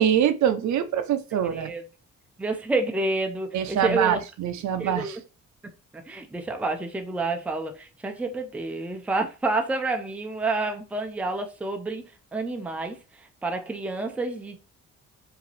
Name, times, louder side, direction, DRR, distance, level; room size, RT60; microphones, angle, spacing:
voice 1, 0.0-1.7 3.5-5.2, right 9 dB, 70° right, 0.6 m, -24 dB
voice 2, 1.3-1.8 2.4-4.2 4.8-5.2 5.9-14.6, right 2 dB, 5° right, 0.4 m, -29 dB
4.8 x 2.7 x 3.2 m
wide cardioid pair, 170°, 30 cm